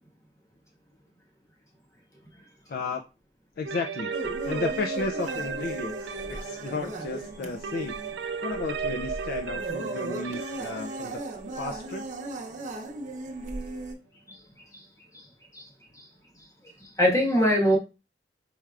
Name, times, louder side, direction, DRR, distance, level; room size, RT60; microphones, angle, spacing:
voice 1, 2.7-3.0 3.6-4.1 4.4-6.0 6.3-8.0 8.4-11.2 11.6-12.0, left 3 dB, 55° left, 4 dB, 0.4 m, -33 dB
sound 1, 3.7-13.3, right 5 dB, 70° right, 0.4 m, -36 dB
sound 2, 4.1-14.0, right 2 dB, 45° right, 0.7 m, -37 dB
voice 2, 17.0-17.8, equal, 20° left, -3 dB, 1.5 m, -22 dB
4.6 x 4.3 x 2.4 m, 0.29 s
head